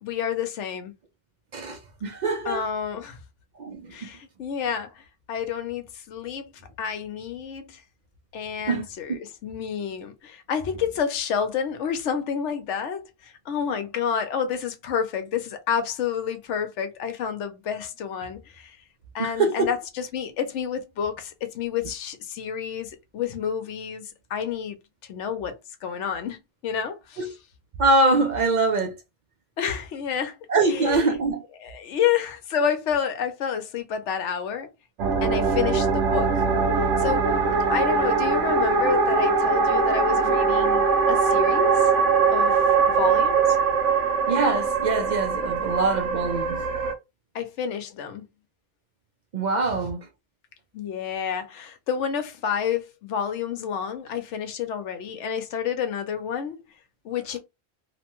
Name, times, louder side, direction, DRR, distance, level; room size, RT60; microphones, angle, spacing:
voice 1, 0.0-0.9 2.4-3.2 3.9-6.5 6.8-7.8 8.3-18.8 19.1-24.8 25.1-26.4 26.6-27.3 29.6-31.2 31.6-34.7 35.2-36.4 37.0-37.4 37.7-41.9 42.3-43.6 47.3-48.3 50.7-56.6 57.0-57.4, left 7 dB, 75° left, 0.9 m, -29 dB
voice 2, 1.5-2.6 3.6-3.9 8.7-8.8 19.2-19.7 27.2-27.3 27.8-28.9 30.5-31.4 44.3-46.6 49.3-50.0, right 3 dB, 60° right, 0.5 m, -23 dB
sound 1, 35.0-46.9, right 5 dB, 80° right, 1.0 m, -22 dB
2.8 x 2.2 x 2.9 m
omnidirectional pair, 1.2 m